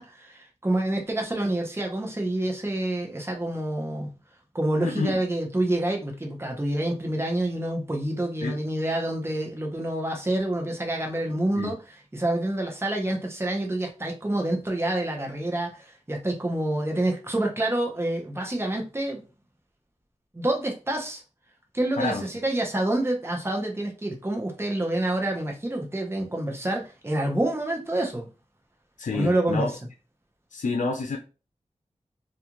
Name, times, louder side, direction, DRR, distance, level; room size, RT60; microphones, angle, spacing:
voice 1, 0.0-4.1 4.5-11.8 12.1-19.2 20.3-21.2 21.7-28.3 29.1-29.7, right 1 dB, 20° right, 0.8 m, -27 dB
voice 2, 29.0-29.7 30.5-31.2, left 4 dB, 80° left, 0.5 m, -28 dB
2.4 x 2.3 x 2.9 m
cardioid pair, 40°, 13 cm